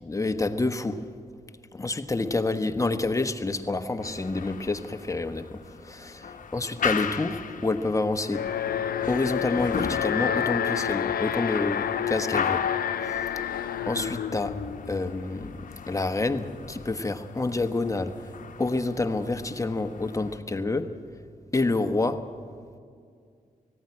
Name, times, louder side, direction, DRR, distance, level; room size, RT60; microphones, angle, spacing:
voice 1, 0.0-1.0 1.7-6.3 6.5-8.5 9.1-12.6 13.0-13.3 13.9-15.5 15.9-18.3 18.6-21.0 21.5-22.3, left 2 dB, 20° left, 1.2 m, -28 dB
sound 1, 4.0-20.4, left 6 dB, 60° left, 1.1 m, -37 dB
Alarm, 8.3-15.4, left 9 dB, 75° left, 0.7 m, -29 dB
18.0 x 15.5 x 9.7 m
cardioid pair, 65°, 15 cm